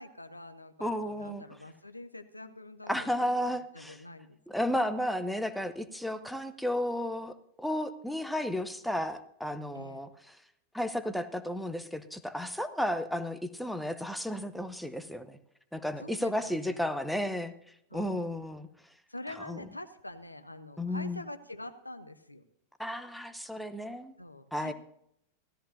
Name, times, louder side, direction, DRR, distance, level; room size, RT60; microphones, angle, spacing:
voice 1, 0.0-3.3 3.7-4.4 9.7-10.0 16.0-16.8 17.9-18.3 19.1-22.4 24.2-24.7, left 1 dB, 85° left, 9 dB, 0.7 m, -45 dB
voice 2, 0.8-1.4 2.9-4.0 4.5-10.4 10.7-15.4 15.7-17.5 17.9-18.7 19.4-19.7 20.8-21.3 22.8-24.1 24.5-24.7, left 1 dB, ahead, 11 dB, 0.8 m, -33 dB
16.0 x 13.5 x 2.7 m, 0.74 s
figure-of-eight pair, 90°, 0 cm